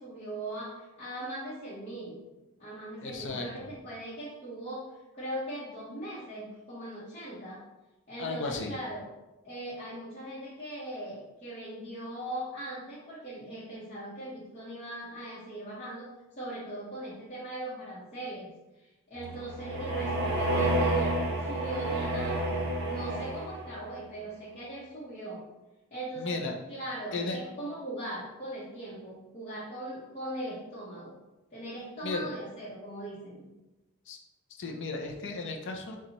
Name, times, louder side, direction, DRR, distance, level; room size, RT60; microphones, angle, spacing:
voice 1, 0.0-2.2 2.6-4.9 5.1-7.6 8.1-9.1 9.4-16.1 16.3-18.5 18.8-22.5 22.9-25.4 25.9-26.4 26.7-31.1 31.5-33.5, right 1 dB, 30° left, -10 dB, 1.1 m, -40 dB
voice 2, 3.0-3.7 8.2-8.7 26.2-26.5 27.1-27.4 32.0-32.3 34.1-34.2 34.6-36.0, left 3 dB, 60° left, 2 dB, 0.6 m, -34 dB
sound 1, 19.2-23.8, right 1 dB, 50° right, 0.8 m, -30 dB
6.6 x 2.4 x 3.0 m, 1.0 s
head